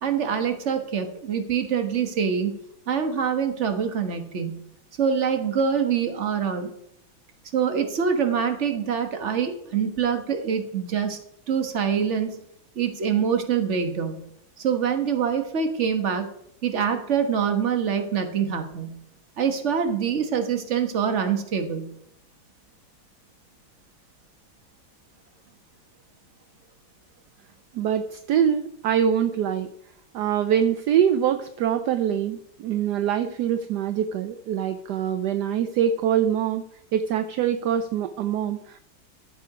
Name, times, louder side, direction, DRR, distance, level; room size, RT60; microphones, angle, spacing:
voice 1, 0.0-2.5 2.9-4.6 5.0-6.7 7.5-11.2 11.5-12.4 12.7-14.2 14.6-16.3 16.6-19.0 19.4-21.9, right 7 dB, 40° right, 7 dB, 1.4 m, -25 dB
voice 2, 27.7-29.7 30.1-36.6 36.9-38.8, right 9 dB, 70° right, 10 dB, 1.0 m, -24 dB
14.0 x 6.9 x 4.9 m, 0.73 s
omnidirectional pair, 2.2 m